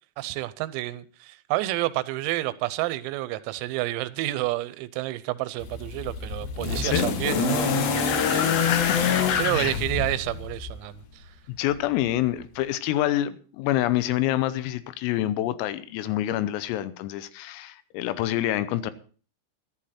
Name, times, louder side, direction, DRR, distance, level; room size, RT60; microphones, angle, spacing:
voice 1, 0.2-8.4 9.4-11.3, right 17 dB, 90° right, 3.5 m, -30 dB
sound 1, 5.6-10.8 11.9-12.0, left 6 dB, 65° left, 2.4 m, -25 dB
voice 2, 8.7-9.1 9.5-9.8 11.5-18.9, left 13 dB, 85° left, 3.5 m, -27 dB
14.0 x 12.0 x 4.3 m
omnidirectional pair, 6.0 m